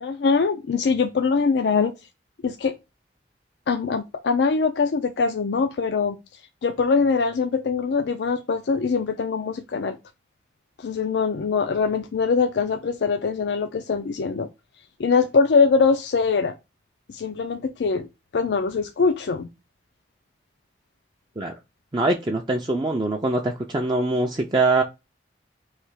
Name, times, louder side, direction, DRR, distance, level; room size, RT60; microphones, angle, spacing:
voice 1, 0.0-1.9 2.4-2.7 3.7-6.2 6.6-10.0 10.8-14.5 15.0-16.6 17.1-18.1 18.3-19.5, left 5 dB, 75° left, 0.4 m, -22 dB
voice 2, 21.9-24.8, right 2 dB, 25° right, 0.4 m, -23 dB
3.3 x 2.9 x 4.6 m
head